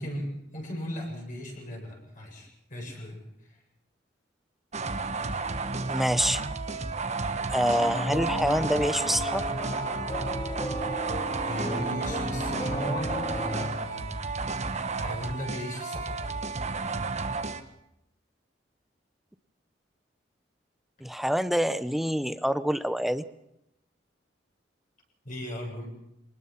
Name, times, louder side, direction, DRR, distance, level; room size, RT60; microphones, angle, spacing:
voice 1, 0.0-3.2 11.4-14.2 14.7-16.4 25.2-25.9, left 1 dB, 45° left, 0 dB, 8.0 m, -37 dB
sound 1, 4.7-17.6, right 3 dB, 40° right, 1.3 m, -32 dB
voice 2, 5.9-6.4 7.5-9.4 21.0-23.2, equal, ahead, 13 dB, 0.8 m, -26 dB
sound 2, 7.8-13.7, equal, 20° left, 2.4 m, -35 dB
24.5 x 20.0 x 5.9 m, 0.83 s
head